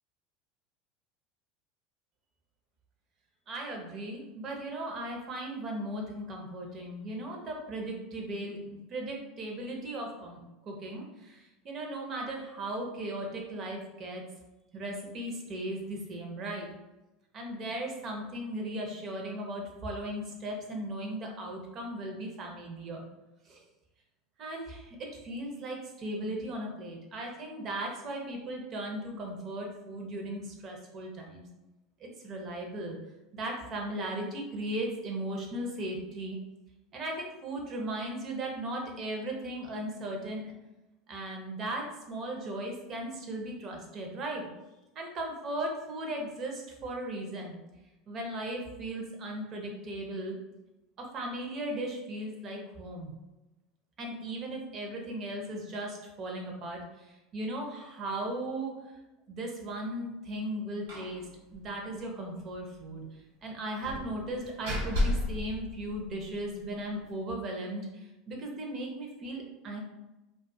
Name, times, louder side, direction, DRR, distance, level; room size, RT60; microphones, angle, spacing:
voice 1, 3.5-14.2 14.7-16.7 17.3-23.0 23.5-23.6 24.4-31.5 32.0-33.0 33.3-36.4 36.9-40.5 41.1-44.5 45.0-47.6 48.1-50.4 51.0-53.1 54.0-56.8 57.1-58.7 59.3-61.3 61.5-63.0 63.4-67.9 68.3-69.8, right 1 dB, 40° right, 1 dB, 0.7 m, -37 dB
Slam, 60.9-61.2 61.5-61.6 61.9-62.0 63.8-66.4, left 1 dB, 85° right, 1.0 m, -33 dB
2.5 x 2.3 x 2.6 m, 1.0 s
supercardioid pair, 105°, 0 cm